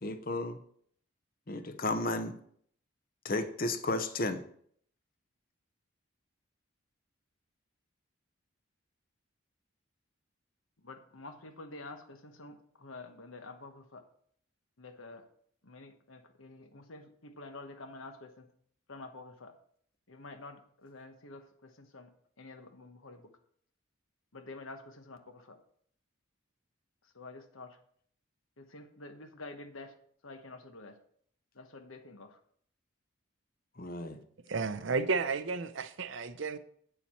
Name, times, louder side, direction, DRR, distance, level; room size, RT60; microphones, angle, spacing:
voice 1, 0.0-0.6 1.5-2.3 3.2-4.4 33.8-34.2, left 2 dB, 45° left, 0.8 m, -33 dB
voice 2, 10.8-14.0 14.8-15.2 15.6-18.5 18.9-19.5 20.1-22.1 22.4-23.3 24.3-25.6 27.1-27.8 28.6-29.9 30.2-31.0 31.5-32.4, left 2 dB, 80° left, 1.1 m, -48 dB
voice 3, 34.5-36.6, right 4 dB, 65° right, 0.6 m, -32 dB
8.7 x 7.0 x 4.3 m
head